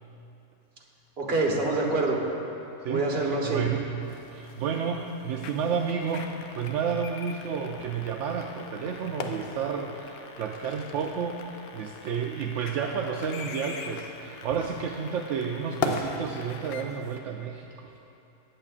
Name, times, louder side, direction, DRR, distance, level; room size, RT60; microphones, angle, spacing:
voice 1, 1.2-2.2 2.9-3.6, right 3 dB, 45° right, -1 dB, 1.3 m, -26 dB
voice 2, 2.8-3.9 4.3-17.9, right 6 dB, 65° right, 1 dB, 0.8 m, -31 dB
sound 1, 3.8-17.5, left 4 dB, 60° left, 0.6 m, -40 dB
sound 2, 4.0-17.2, left 5 dB, 90° left, 1.1 m, -46 dB
19.0 x 7.5 x 2.5 m, 2.8 s
omnidirectional pair, 1.5 m